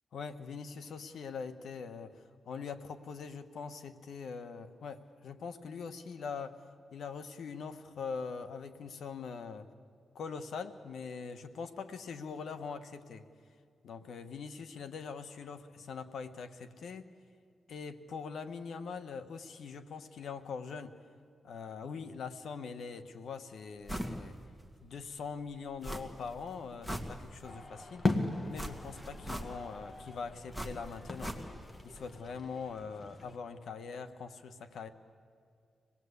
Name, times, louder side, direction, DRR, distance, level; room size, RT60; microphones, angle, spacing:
voice 1, 0.1-6.6 6.9-9.7 10.1-13.3 13.8-17.1 17.7-21.0 21.4-24.4 24.8-28.1 28.5-31.3 31.8-34.9, left 5 dB, 80° left, 9 dB, 1.3 m, -42 dB
sound 1, 23.9-24.2 24.6-24.7 25.8-26.3 26.6-27.6 28.5-29.8 30.5-31.8 32.0-32.1, equal, 15° left, 2.4 m, -40 dB
sound 2, 27.4-33.4, left 3 dB, 40° left, 1.9 m, -38 dB
25.5 x 19.5 x 8.3 m, 2.2 s
cardioid pair, 80°, 0 cm